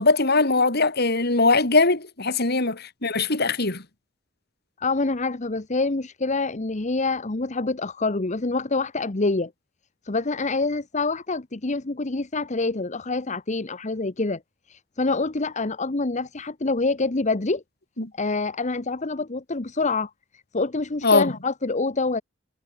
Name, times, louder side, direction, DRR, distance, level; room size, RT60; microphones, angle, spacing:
voice 1, 0.0-3.8 18.0-18.1 21.0-21.3, left 3 dB, 55° left, 3.8 m, -21 dB
voice 2, 4.8-9.5 10.0-14.4 14.7-17.6 18.1-22.2, left 3 dB, 40° left, 1.1 m, -26 dB
head